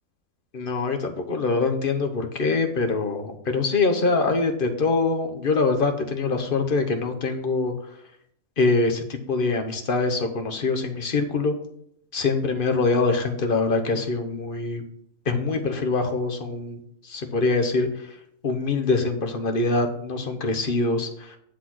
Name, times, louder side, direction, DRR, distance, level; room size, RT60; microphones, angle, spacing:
voice 1, 0.5-7.7 8.6-11.5 12.1-14.8 15.3-17.9 18.4-21.4, left 3 dB, 40° left, 5 dB, 1.0 m, -24 dB
9.9 x 4.1 x 6.1 m, 0.69 s
omnidirectional pair, 1.7 m